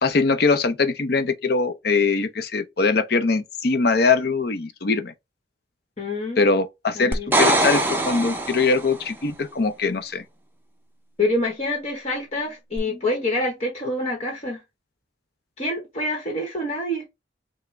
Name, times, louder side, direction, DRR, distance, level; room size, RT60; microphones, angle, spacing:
voice 1, 0.0-5.1 6.4-10.2, left 4 dB, 55° left, 0.6 m, -22 dB
voice 2, 6.0-6.4 7.0-7.3 11.2-14.6 15.6-17.1, left 1 dB, 35° left, 1.1 m, -26 dB
sound 1, 7.1-9.0 12.8-12.9, right 1 dB, 10° right, 0.6 m, -22 dB
5.9 x 2.1 x 3.2 m
head